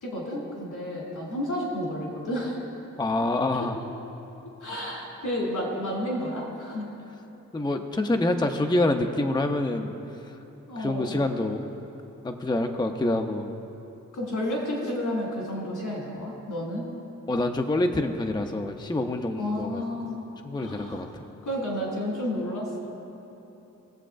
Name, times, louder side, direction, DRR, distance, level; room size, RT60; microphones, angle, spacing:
voice 1, 0.0-2.6 3.6-3.7 4.6-6.9 10.7-11.1 14.1-16.9 19.4-21.0 21.4-22.9, left 1 dB, 80° left, -3 dB, 2.5 m, -31 dB
voice 2, 3.0-3.8 7.5-9.9 10.8-11.6 12.2-13.5 17.3-19.9 20.4-21.1, left 2 dB, 15° left, 4 dB, 0.6 m, -26 dB
20.5 x 7.5 x 2.5 m, 3.0 s
cardioid pair, 75°, 31 cm